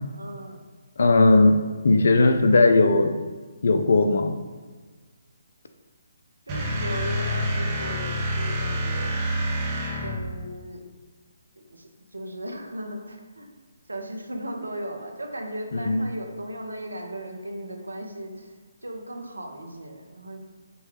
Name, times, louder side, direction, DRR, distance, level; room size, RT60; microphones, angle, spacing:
voice 1, 0.1-0.7 6.5-9.1 9.9-10.8 11.6-13.5 13.9-18.5 18.8-20.4, right 1 dB, 90° right, 2 dB, 0.7 m, -37 dB
voice 2, 1.0-1.6 1.8-3.1 3.6-4.3 15.7-16.1, left 2 dB, 65° left, 7 dB, 0.4 m, -18 dB
sound 1, 6.5-10.4, equal, 25° right, 0.5 m, -27 dB
5.2 x 2.3 x 3.2 m, 1.4 s
figure-of-eight pair, 145°, 0 cm